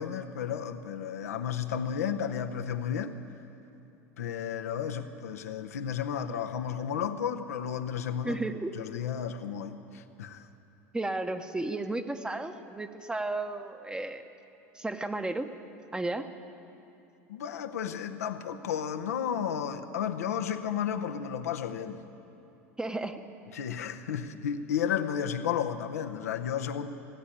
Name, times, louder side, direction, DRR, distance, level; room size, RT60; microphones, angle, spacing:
voice 1, 0.0-3.2 4.2-8.4 8.8-10.5 17.3-22.0 23.5-26.9, left 8 dB, 85° left, 6 dB, 0.8 m, -33 dB
voice 2, 8.2-8.7 10.9-14.2 14.7-15.5 15.9-16.3 22.8-23.2, right 2 dB, 10° right, 8 dB, 0.9 m, -33 dB
17.0 x 8.4 x 9.9 m, 2.7 s
hypercardioid pair, 90°, 8 cm